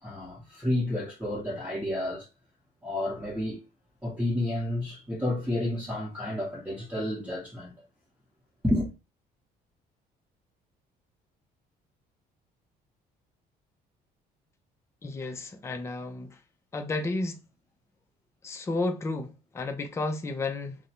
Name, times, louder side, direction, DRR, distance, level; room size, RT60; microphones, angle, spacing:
voice 1, 0.0-2.3 2.8-3.6 4.0-7.7 8.6-8.9, left 1 dB, 5° right, 0.9 m, -30 dB
voice 2, 15.0-16.3 16.7-17.4 18.4-20.8, left 2 dB, 15° left, 0.4 m, -32 dB
2.5 x 2.1 x 2.8 m
cardioid pair, 110°, 17 cm